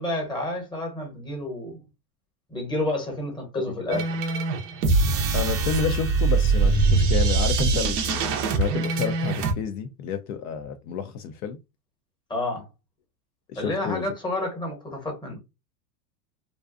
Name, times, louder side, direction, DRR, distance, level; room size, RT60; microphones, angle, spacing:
voice 1, 0.0-1.8 2.5-4.1 12.3-12.7 13.6-15.4, left 1 dB, 10° left, 0.9 m, -30 dB
sound 1, 3.9-9.5, right 4 dB, 30° right, 0.4 m, -23 dB
voice 2, 5.3-11.6 13.5-14.0, left 7 dB, 65° left, 0.5 m, -30 dB
2.6 x 2.2 x 2.4 m
supercardioid pair, 125°, 49 cm